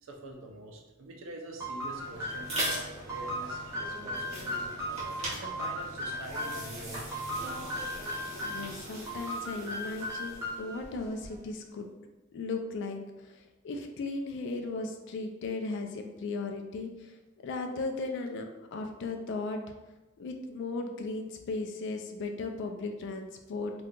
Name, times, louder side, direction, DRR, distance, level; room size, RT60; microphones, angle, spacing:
voice 1, 0.0-4.8 5.3-7.5, right 2 dB, 70° right, 1 dB, 0.5 m, -45 dB
sound 1, 1.6-6.7 7.1-8.7 9.1-10.8, equal, 15° right, 0.6 m, -36 dB
sound 2, 1.7-11.6, right 1 dB, 30° right, 1.0 m, -41 dB
voice 2, 8.4-11.9 12.3-17.2 17.4-19.7 20.2-23.7, left 3 dB, 60° left, 4 dB, 0.3 m, -36 dB
2.7 x 2.3 x 3.7 m, 1.1 s
head